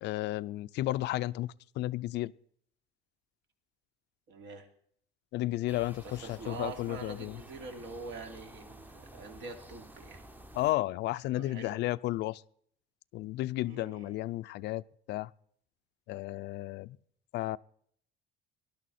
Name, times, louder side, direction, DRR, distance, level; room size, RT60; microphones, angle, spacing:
voice 1, 0.0-2.3 5.3-7.4 10.5-12.4 13.1-15.3 16.1-17.0 17.3-17.6, left 16 dB, 65° left, 0.5 m, -33 dB
voice 2, 4.3-4.7 6.0-10.2 11.3-11.8 13.6-14.2, right 4 dB, 70° right, 3.0 m, -45 dB
sound 1, 5.7-10.7, right 1 dB, 10° right, 0.8 m, -51 dB
18.5 x 12.0 x 4.2 m
cardioid pair, 135°, 19 cm